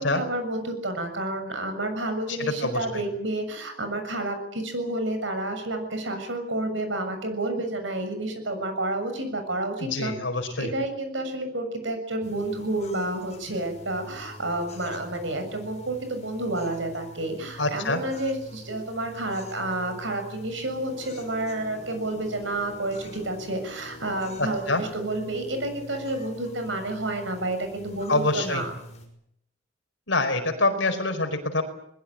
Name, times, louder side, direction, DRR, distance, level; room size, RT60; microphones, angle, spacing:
voice 1, 0.0-10.1 10.6-28.7, right 1 dB, 75° right, 7 dB, 6.9 m, -30 dB
voice 2, 2.3-3.0 9.8-10.7 17.6-18.0 24.4-24.8 28.1-28.6 30.1-31.6, left 2 dB, 70° left, 7 dB, 4.8 m, -26 dB
sound 1, 12.2-29.1, left 1 dB, 35° left, 6.1 m, -45 dB
22.0 x 21.0 x 8.9 m, 0.76 s
head